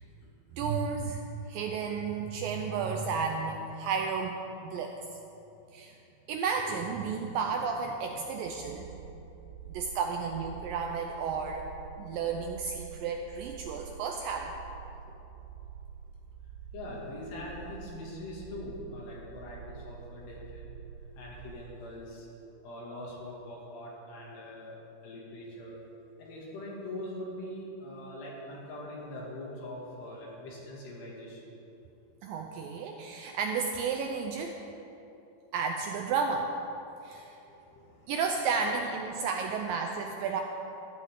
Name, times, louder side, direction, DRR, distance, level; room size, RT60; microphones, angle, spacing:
voice 1, 0.5-1.2 1.5-4.4 4.6-4.9 5.7-5.9 6.3-9.0 9.7-11.6 12.0-14.5 32.2-34.6 35.5-36.5 37.0-37.4 38.1-40.4, right 5 dB, 80° right, 3 dB, 2.1 m, -32 dB
sound 1, 8.7-21.5, right 8 dB, 65° right, 3.1 m, -47 dB
voice 2, 16.7-20.8 21.2-22.3 22.6-24.7 25.0-25.8 26.2-31.4 37.7-37.8 39.7-39.8, left 1 dB, 85° left, -4 dB, 4.5 m, -42 dB
14.5 x 14.0 x 3.8 m, 2.9 s
omnidirectional pair, 4.6 m